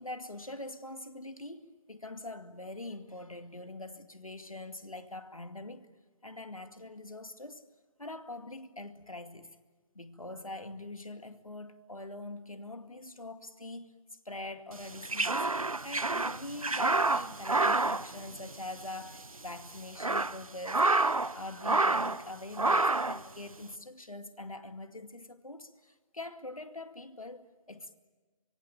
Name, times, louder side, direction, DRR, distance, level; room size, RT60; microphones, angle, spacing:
voice 1, 0.0-5.9 6.2-7.6 8.0-9.5 9.9-13.9 14.3-20.9 21.3-28.0, left 2 dB, 85° left, 2.3 m, -44 dB
sound 1, 14.8-18.9 19.1-19.3 19.8-21.3 21.6-22.2 22.6-23.2, right 2 dB, 90° right, 1.0 m, -28 dB
24.5 x 23.5 x 8.9 m
figure-of-eight pair, 140°, 17 cm